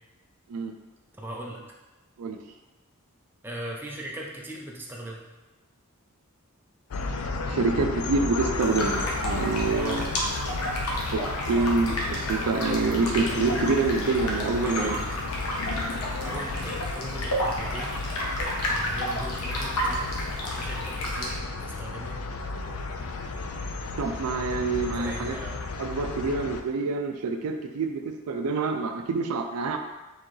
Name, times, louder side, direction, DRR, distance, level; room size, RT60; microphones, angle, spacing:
voice 1, 1.2-1.6 3.4-5.2 9.8-10.0 14.6-15.0 16.2-17.9 18.7-20.0 20.6-22.2 25.0-25.7, right 1 dB, 10° right, -2 dB, 0.6 m, -38 dB
sound 1, 6.9-26.6, left 3 dB, 70° left, 0.4 m, -33 dB
voice 2, 7.4-10.1 11.1-15.0 24.0-25.3 25.8-29.8, right 3 dB, 85° right, 6 dB, 0.4 m, -27 dB
sound 2, 8.6-21.3, equal, 90° left, 0.9 m, -32 dB
4.5 x 3.6 x 3.1 m, 1.1 s
head